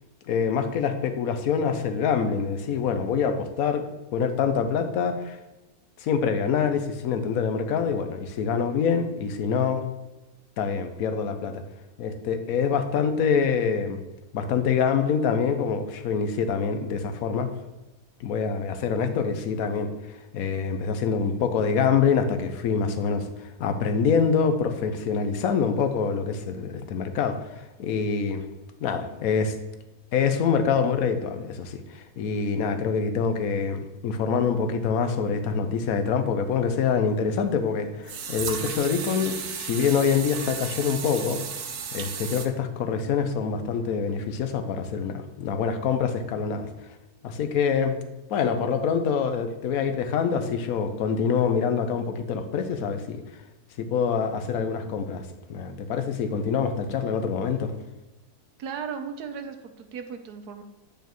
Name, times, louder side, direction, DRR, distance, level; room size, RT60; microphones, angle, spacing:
voice 1, 0.3-3.8 4.1-5.4 6.0-9.8 10.6-11.6 12.0-14.0 14.3-17.5 18.2-28.5 28.8-29.5 30.1-41.4 41.9-46.7 47.2-48.0 48.3-53.2 53.8-55.2 55.5-57.7, left 6 dB, 70° left, 8 dB, 1.1 m, -25 dB
sound 1, 37.2-37.3 38.1-42.5, right 6 dB, 65° right, 1.1 m, -34 dB
voice 2, 58.6-60.6, right 6 dB, 85° right, 7 dB, 1.3 m, -36 dB
9.0 x 5.1 x 3.0 m, 1.0 s
omnidirectional pair, 1.6 m